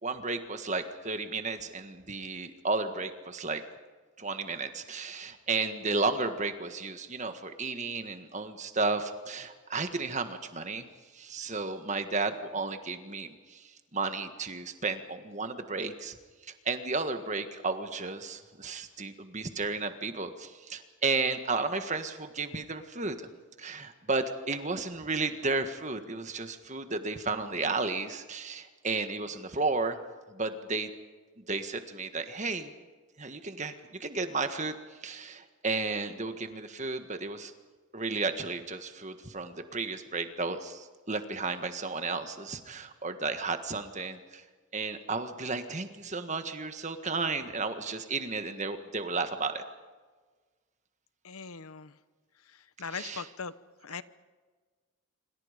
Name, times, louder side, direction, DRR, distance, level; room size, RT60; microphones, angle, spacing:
voice 1, 0.0-3.6 4.2-10.8 11.2-13.6 13.9-16.1 16.6-23.1 23.6-30.0 30.3-30.9 31.5-32.7 33.2-33.7 34.0-34.7 35.0-37.5 37.9-44.2 44.7-49.6 52.9-53.3, right 3 dB, 35° right, 8 dB, 1.7 m, -33 dB
voice 2, 51.2-51.9 52.8-53.5 53.8-54.0, left 5 dB, 80° left, 15 dB, 0.9 m, -39 dB
26.5 x 26.5 x 5.2 m, 1.4 s
head